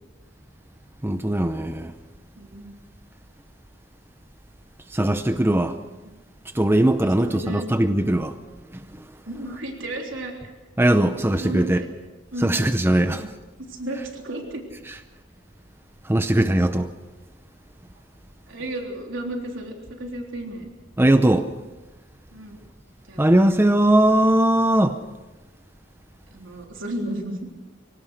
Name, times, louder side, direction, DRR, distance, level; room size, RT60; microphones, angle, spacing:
voice 1, 1.0-1.9 4.9-5.8 6.5-8.3 10.8-11.8 12.4-13.3 14.9-15.0 16.0-16.9 21.0-21.5 23.2-25.0, right 1 dB, 10° right, 0.6 m, -19 dB
voice 2, 2.4-2.8 7.0-7.7 9.3-10.3 11.4-11.9 12.3-12.7 13.0-13.3 13.7-14.6 18.5-20.7 22.3-22.5 23.1-23.2 26.3-27.6, right 1 dB, 90° right, 3.5 m, -33 dB
24.5 x 17.5 x 6.5 m
head